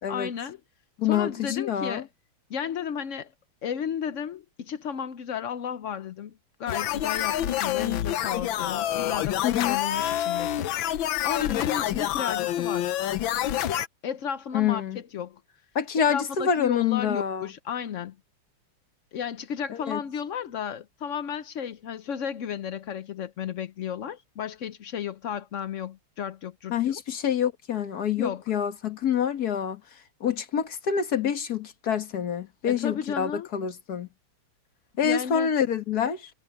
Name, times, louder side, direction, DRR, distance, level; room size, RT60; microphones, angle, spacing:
voice 1, 0.1-0.6 1.0-2.1 2.5-3.3 3.6-12.9 14.0-15.4 16.1-18.1 19.1-27.0 28.2-28.4 32.7-33.5 35.0-35.5, left 8 dB, 90° left, 0.6 m, -33 dB
voice 2, 1.0-2.0 9.4-9.8 14.5-15.0 15.8-17.5 19.9-20.0 26.7-29.8 30.2-34.1 35.0-36.3, left 8 dB, 50° left, 1.9 m, -26 dB
sound 1, 6.7-13.9, left 12 dB, 70° left, 1.5 m, -27 dB
omnidirectional pair, 2.3 m